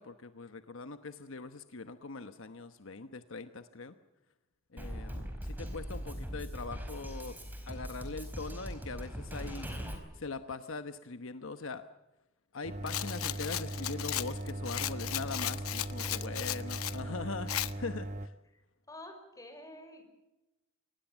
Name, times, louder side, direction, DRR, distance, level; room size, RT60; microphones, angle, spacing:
voice 1, 0.0-3.9 4.7-7.4 7.7-11.8 12.5-18.4, left 3 dB, 65° left, 10 dB, 1.1 m, -42 dB
Drum kit, 4.8-9.9, equal, 10° right, 4.6 m, -40 dB
sound 1, 12.6-18.3, right 1 dB, 35° right, 1.1 m, -39 dB
Rattle, 12.9-17.0 17.5-17.7, left 13 dB, 90° left, 0.9 m, -36 dB
voice 2, 18.9-20.0, left 1 dB, 15° left, 5 dB, 5.5 m, -48 dB
25.0 x 19.5 x 7.3 m, 1.0 s
head